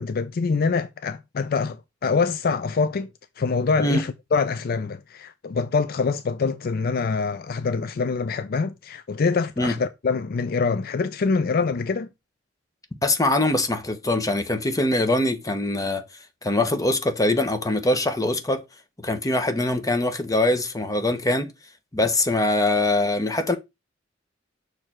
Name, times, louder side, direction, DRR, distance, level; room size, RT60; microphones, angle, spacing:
voice 1, 0.0-3.1 3.4-12.1, left 4 dB, 50° left, 0.4 m, -25 dB
voice 2, 13.0-16.0 16.4-18.6 19.0-21.5 21.9-23.6, left 2 dB, 20° left, 1.0 m, -23 dB
6.5 x 3.3 x 6.1 m
head